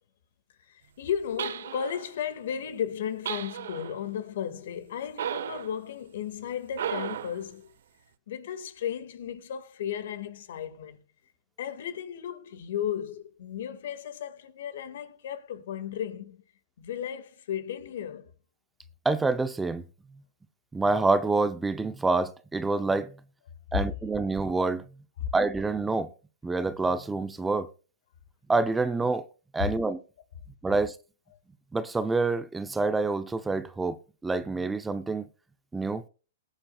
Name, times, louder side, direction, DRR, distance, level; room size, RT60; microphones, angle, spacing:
voice 1, 0.7-7.7 8.3-11.0 11.6-16.4 16.8-18.3 25.2-25.3, left 9 dB, 70° left, 1.8 m, -35 dB
sound 1, 1.4-2.1 3.3-4.0 5.2-5.8 6.7-7.4, right 9 dB, 75° right, 0.8 m, -34 dB
voice 2, 19.0-19.8 20.7-23.1 23.7-24.8 25.3-26.1 26.4-27.7 28.5-29.3 29.5-30.0 30.6-31.0 31.7-35.3 35.7-36.0, right 3 dB, 10° right, 0.6 m, -27 dB
19.5 x 8.9 x 2.3 m
hypercardioid pair, 140°, 0 cm